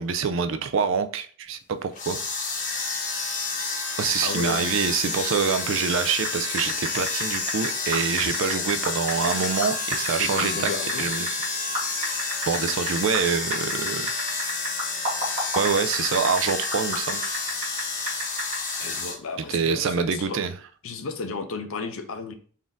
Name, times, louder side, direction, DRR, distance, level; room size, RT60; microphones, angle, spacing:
voice 1, 0.0-2.2 4.0-10.7 11.0-11.4 12.5-14.1 15.6-17.2 19.5-20.5, right 6 dB, 55° right, 0.4 m, -26 dB
sound 1, 1.9-19.2, left 4 dB, 35° left, 0.8 m, -29 dB
voice 2, 4.2-4.7 10.2-11.1 18.8-20.4 20.8-22.3, left 4 dB, 65° left, 0.6 m, -33 dB
sound 2, 6.1-6.3 6.6-10.1 10.4-11.5 11.7-13.2 13.5-17.8 18.1-18.6, right 1 dB, 30° right, 1.5 m, -29 dB
4.1 x 2.6 x 3.5 m
head